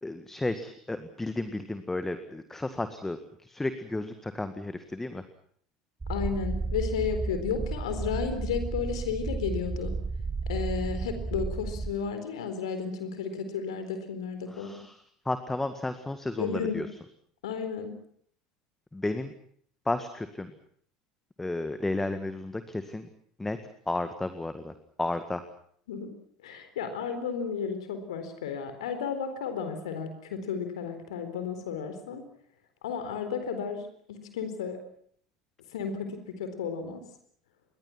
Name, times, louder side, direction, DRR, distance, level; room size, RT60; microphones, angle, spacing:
voice 1, 0.0-5.2 14.5-15.0 15.3-16.9 18.9-19.3 19.9-20.5 21.4-23.1 23.4-23.6 23.9-24.7 25.0-25.4, left 2 dB, 10° left, 10 dB, 1.9 m, -33 dB
sound 1, 6.0-11.9, right 3 dB, 15° right, 1.6 m, -33 dB
voice 2, 6.1-9.9 10.5-14.8 16.4-16.8 17.4-17.9 25.9-26.1 26.4-32.2 32.8-33.8 34.1-34.8 35.7-37.0, left 6 dB, 65° left, 8 dB, 4.0 m, -33 dB
28.5 x 23.5 x 6.1 m, 0.62 s
figure-of-eight pair, 70°, 3 cm